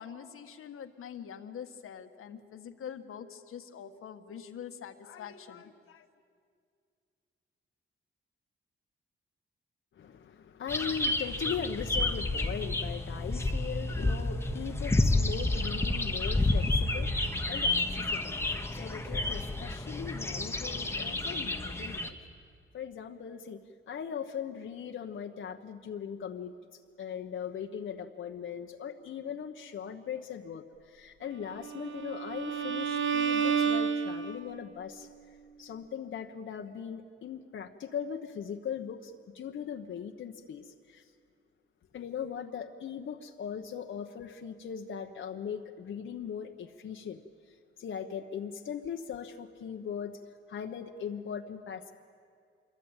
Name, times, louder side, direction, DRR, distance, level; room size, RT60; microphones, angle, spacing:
voice 1, 0.0-6.1, left 8 dB, 85° left, 8 dB, 1.6 m, -44 dB
voice 2, 9.9-22.2 22.7-23.6 23.9-26.5 27.0-35.1 35.6-41.0 41.9-47.2 47.5-50.1 50.5-51.9, left 7 dB, 65° left, 4 dB, 1.1 m, -39 dB
sound 1, 10.7-22.1, left 2 dB, 10° left, 1.2 m, -30 dB
Bowed string instrument, 31.6-34.7, right 6 dB, 65° right, 1.3 m, -30 dB
27.0 x 22.5 x 9.0 m, 2.2 s
wide cardioid pair, 160°, 21 cm